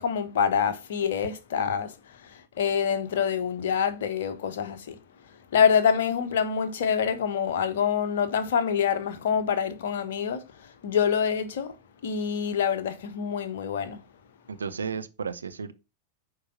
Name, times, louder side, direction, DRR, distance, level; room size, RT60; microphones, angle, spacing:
voice 1, 0.0-5.0 5.5-11.7 12.0-14.0, left 7 dB, 60° left, 1.3 m, -26 dB
voice 2, 14.5-15.7, right 5 dB, 75° right, 0.8 m, -33 dB
9.0 x 4.9 x 5.7 m
figure-of-eight pair, 90°, 0 cm